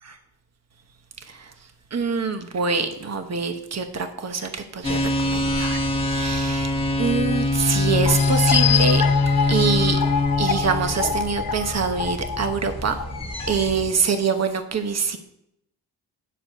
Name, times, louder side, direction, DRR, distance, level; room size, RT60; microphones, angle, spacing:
voice 1, 1.9-5.8 6.1-6.7 7.0-9.0 9.5-10.0 10.4-13.0 13.5-15.2, right 5 dB, 40° right, 6 dB, 1.0 m, -25 dB
sound 1, 4.8-13.9, left 2 dB, 15° left, 1.1 m, -23 dB
sound 2, 8.1-13.5, left 7 dB, 60° left, 1.8 m, -26 dB
9.9 x 4.5 x 6.7 m, 0.80 s
cardioid pair, 85°, 42 cm